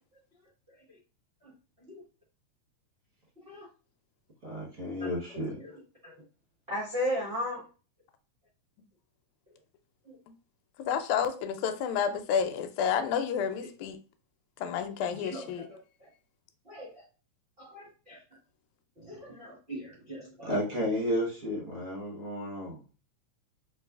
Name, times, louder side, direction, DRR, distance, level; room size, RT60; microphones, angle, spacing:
voice 1, 4.4-5.6 20.5-22.8, equal, 55° right, 0.9 m, -32 dB
voice 2, 5.6-6.1 6.7-7.6 13.6-13.7 15.1-16.1 16.6-17.0 17.6-18.2 19.0-20.5, equal, 75° right, 0.5 m, -37 dB
voice 3, 10.8-14.0 14.6-15.7, left 7 dB, 85° left, 1.9 m, -30 dB
4.2 x 3.2 x 2.3 m
omnidirectional pair, 3.4 m